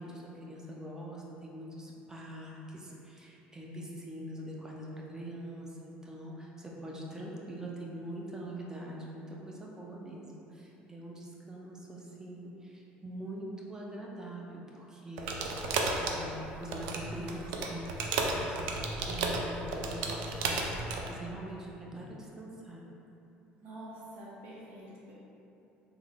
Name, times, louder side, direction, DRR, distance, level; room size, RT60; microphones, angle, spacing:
voice 1, 0.0-22.8, right 1 dB, 15° right, -3 dB, 0.6 m, -43 dB
sound 1, 15.2-21.1, right 3 dB, 80° right, 0.4 m, -33 dB
voice 2, 23.6-25.1, right 1 dB, 55° right, -7 dB, 0.8 m, -47 dB
3.5 x 2.0 x 3.3 m, 2.9 s
supercardioid pair, 90°, 4 cm